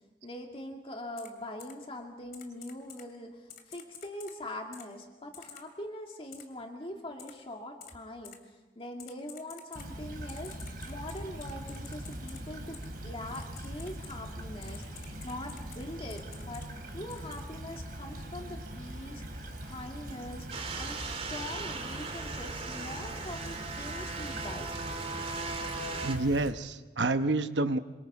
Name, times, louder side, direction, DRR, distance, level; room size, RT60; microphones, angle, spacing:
voice 1, 0.2-10.6 10.9-12.8 13.0-20.5 20.7-24.7, left 1 dB, 30° left, 2 dB, 2.1 m, -43 dB
Typing, 1.2-1.3 1.6-1.7 2.3-3.0 3.5-4.3 4.7-4.8 5.3-5.6 6.3-6.4 7.2-7.3 7.8-7.9 8.2-8.4 9.0-9.9 10.3-12.4 12.7-12.9 13.3-14.1 14.6-15.8 16.1-16.7 17.1-17.4, left 8 dB, 55° left, 2.5 m, -49 dB
Stream / Trickle dribble, 9.8-26.5, right 1 dB, 55° right, 3.9 m, -42 dB
sound 1, 20.5-26.2, right 3 dB, 35° right, 2.3 m, -38 dB
voice 2, 26.0-27.8, right 2 dB, 75° right, 10 dB, 1.1 m, -28 dB
27.5 x 25.0 x 4.9 m, 1.2 s
head